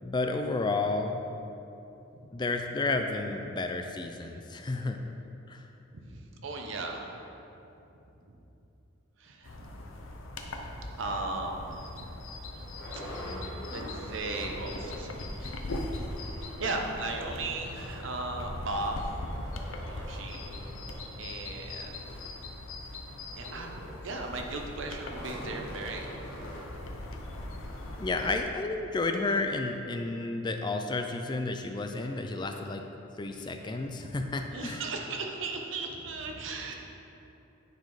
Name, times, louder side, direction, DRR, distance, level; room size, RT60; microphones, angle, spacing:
voice 1, 0.0-1.2 2.3-5.0 5.5-5.6 28.0-32.8 33.2-34.8, left 3 dB, 20° left, 5 dB, 0.3 m, -31 dB
voice 2, 5.9-7.2 9.2-9.6 11.0-12.0 12.9-13.0 13.7-15.8 16.2-19.2 19.9-20.4 21.1-22.0 23.4-23.7 24.0-26.1 34.0-34.1 34.5-36.7, right 2 dB, 70° right, 2 dB, 0.9 m, -36 dB
sound 1, 9.4-28.4, left 1 dB, 85° left, 0.7 m, -40 dB
sound 2, 11.9-12.0 12.2-15.2 15.5-15.6 15.8-28.6 29.2-29.3 29.7-29.8, equal, 55° left, 1.6 m, -46 dB
9.5 x 4.5 x 4.8 m, 2.9 s
head